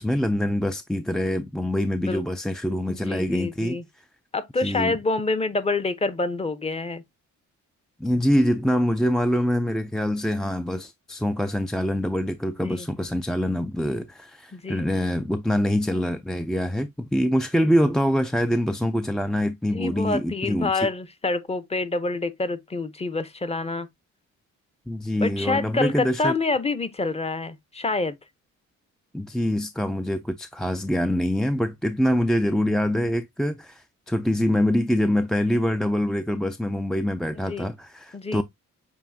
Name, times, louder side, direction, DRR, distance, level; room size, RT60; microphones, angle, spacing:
voice 1, 0.0-3.8 4.6-5.0 8.0-20.9 24.9-26.3 29.1-38.4, equal, ahead, 0.3 m, -24 dB
voice 2, 2.9-3.8 4.3-7.0 12.6-12.9 14.5-14.9 19.7-23.9 25.2-28.2 37.4-37.7 38.1-38.4, left 3 dB, 20° left, 0.7 m, -27 dB
7.2 x 2.7 x 2.6 m
cardioid pair, 90°, 30 cm